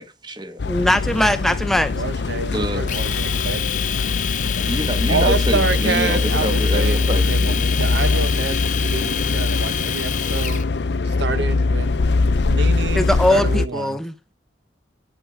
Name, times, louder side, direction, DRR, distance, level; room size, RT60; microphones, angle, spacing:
voice 1, 0.0-0.6 2.5-2.9 4.7-7.5, equal, 25° right, 1.3 m, -27 dB
sound 1, 0.6-13.7, left 3 dB, 70° left, 0.5 m, -22 dB
voice 2, 0.7-1.9 12.9-14.1, left 1 dB, ahead, 0.5 m, -20 dB
voice 3, 1.9-3.6 5.1-10.6 11.0-11.9 12.4-14.0, right 4 dB, 75° right, 0.8 m, -27 dB
Domestic sounds home sounds, 2.9-10.6, left 10 dB, 45° left, 0.8 m, -27 dB
10.0 x 8.4 x 5.0 m
head